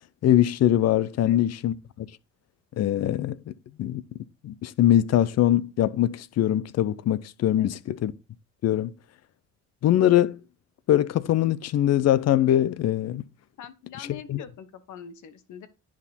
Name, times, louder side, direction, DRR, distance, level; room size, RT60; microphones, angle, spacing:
voice 1, 0.2-2.1 2.8-3.5 3.8-4.0 4.4-8.1 8.6-8.9 9.8-10.4 10.9-13.2 14.0-14.4, left 12 dB, 60° left, 0.5 m, -22 dB
voice 2, 13.6-15.7, left 7 dB, 75° left, 1.2 m, -43 dB
10.5 x 3.7 x 4.2 m
cardioid pair, 90°, 30 cm